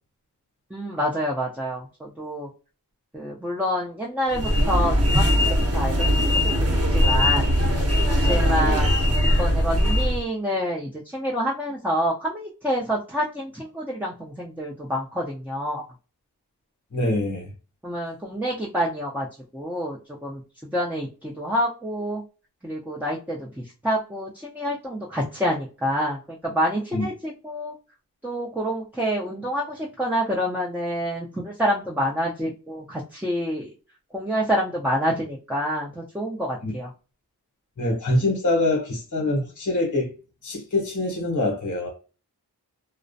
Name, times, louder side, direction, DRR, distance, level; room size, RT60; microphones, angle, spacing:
voice 1, 0.7-2.5 3.1-5.2 5.7-7.5 8.2-9.0 9.2-15.8 17.8-19.3 19.5-20.0 20.2-20.4 20.7-22.2 22.6-27.7 28.2-33.7 34.1-36.9, equal, 5° right, 0.5 m, -27 dB
sound 1, 4.3-10.2, equal, 40° right, 0.9 m, -20 dB
voice 2, 16.9-17.5 26.9-27.1 36.6-36.7 37.8-40.1 40.4-41.9, left 2 dB, 50° left, 0.9 m, -24 dB
2.4 x 2.0 x 2.6 m
cardioid pair, 40°, 39 cm